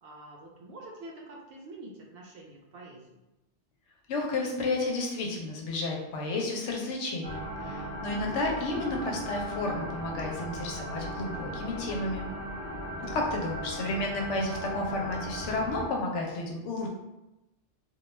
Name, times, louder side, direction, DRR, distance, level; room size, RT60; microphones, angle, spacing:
voice 1, 0.0-3.2 8.1-8.4 13.0-13.2, right 1 dB, 65° right, -1 dB, 0.7 m, -46 dB
voice 2, 4.1-12.2 13.0-16.9, left 2 dB, 85° left, 0 dB, 0.9 m, -32 dB
sound 1, 7.2-15.9, equal, 45° left, 0.6 m, -37 dB
2.2 x 2.2 x 3.1 m, 0.96 s
omnidirectional pair, 1.2 m